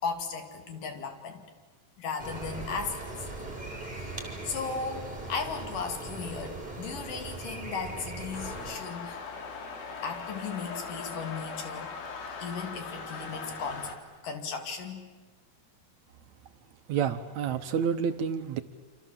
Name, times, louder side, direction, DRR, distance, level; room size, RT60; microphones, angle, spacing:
voice 1, 0.0-1.4 2.0-3.0 3.9-4.2 4.4-9.2 10.0-11.9 12.4-13.9 14.2-15.1, left 5 dB, 65° left, 6 dB, 4.0 m, -36 dB
sound 1, 2.2-8.7, right 2 dB, 10° right, 4.2 m, -39 dB
sound 2, 8.3-14.0, left 4 dB, 90° left, 4.3 m, -40 dB
voice 2, 16.9-18.6, right 7 dB, 70° right, 9 dB, 1.9 m, -29 dB
28.5 x 26.5 x 7.6 m, 1.3 s
omnidirectional pair, 4.1 m